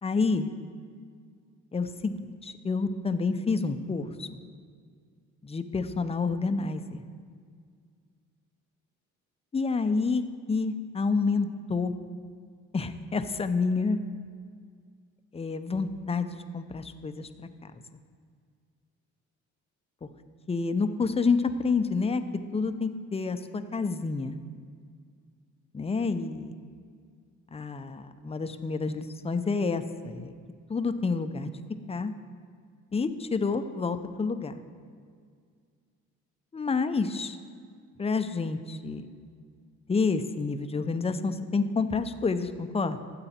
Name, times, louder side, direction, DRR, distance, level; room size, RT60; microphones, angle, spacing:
voice 1, 0.0-0.5 1.7-4.3 5.4-7.0 9.5-10.2 10.5-11.9 12.7-14.0 15.3-17.5 17.7-17.8 20.0-20.1 20.5-24.4 25.7-26.5 27.5-30.3 30.7-31.5 31.9-32.1 32.9-34.5 36.5-37.4 38.0-39.1 39.9-43.0, left 4 dB, 20° left, 9 dB, 0.6 m, -29 dB
13.0 x 7.8 x 4.3 m, 2.1 s
cardioid pair, 90°, 30 cm